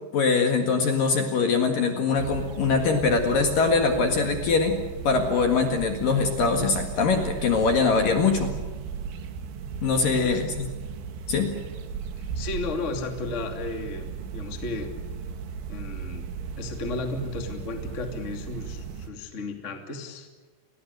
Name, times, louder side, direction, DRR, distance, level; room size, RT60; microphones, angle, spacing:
voice 1, 0.1-4.8 5.0-8.5 9.8-10.5 11.3-11.5, left 4 dB, 55° left, 5 dB, 2.8 m, -22 dB
sound 1, 2.2-19.1, right 6 dB, 70° right, 3.9 m, -36 dB
voice 2, 10.1-10.4 12.2-14.9 15.7-16.3 16.6-20.3, left 3 dB, 25° left, 4 dB, 1.7 m, -34 dB
30.0 x 22.5 x 6.7 m, 1.3 s
omnidirectional pair, 5.9 m